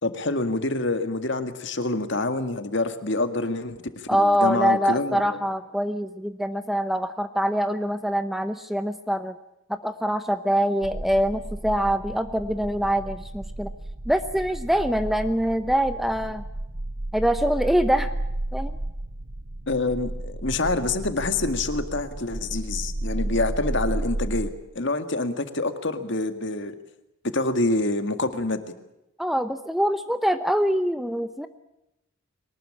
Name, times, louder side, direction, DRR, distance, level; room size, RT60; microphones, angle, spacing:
voice 1, 0.0-3.8 4.2-5.2 19.7-24.5 24.8-26.7 27.3-28.7, left 2 dB, 55° left, 8 dB, 1.9 m, -26 dB
voice 2, 4.1-9.4 9.7-13.7 14.1-16.4 17.1-18.1 18.5-18.7 29.2-31.5, equal, ahead, 9 dB, 0.8 m, -24 dB
sound 1, 10.8-24.5, right 1 dB, 45° right, 1.0 m, -33 dB
23.5 x 19.0 x 8.7 m, 0.90 s
head